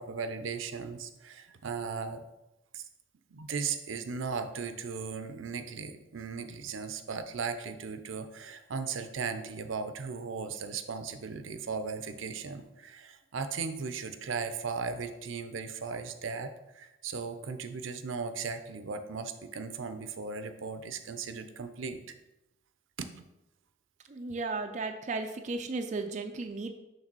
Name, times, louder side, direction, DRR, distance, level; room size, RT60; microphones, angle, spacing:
voice 1, 0.0-2.2 2.7-2.8 3.3-22.2 23.0-23.2, right 5 dB, 80° right, 9 dB, 0.6 m, -37 dB
voice 2, 24.1-26.7, right 3 dB, 35° right, 5 dB, 0.4 m, -35 dB
6.5 x 3.3 x 6.0 m, 0.95 s
head